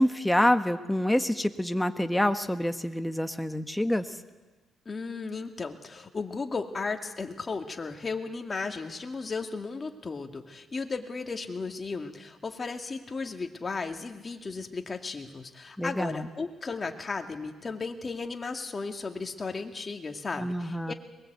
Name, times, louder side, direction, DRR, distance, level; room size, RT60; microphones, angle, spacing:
voice 1, 0.0-4.1 15.8-16.3 20.4-20.9, left 1 dB, 5° left, 8 dB, 1.4 m, -26 dB
voice 2, 4.9-20.9, left 4 dB, 30° left, 4 dB, 2.3 m, -35 dB
22.0 x 21.0 x 8.1 m, 1.2 s
cardioid pair, 90°, 0 cm